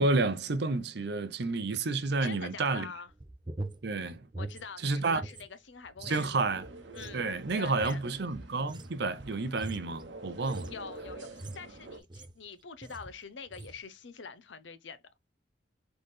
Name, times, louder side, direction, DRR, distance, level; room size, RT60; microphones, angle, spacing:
voice 1, 0.0-2.9 3.8-4.2 4.8-5.2 6.0-6.7 7.1-10.7, right 3 dB, 65° right, 0.7 m, -30 dB
voice 2, 2.2-3.1 4.4-6.3 6.9-8.0 10.7-15.0, left 5 dB, 80° left, 0.7 m, -45 dB
sound 1, 3.1-5.5 5.8-12.5 12.8-13.2 13.5-13.8, right 2 dB, 25° right, 0.6 m, -44 dB
sound 2, 6.5-12.0, right 2 dB, 80° right, 1.0 m, -47 dB
4.0 x 3.9 x 3.3 m
head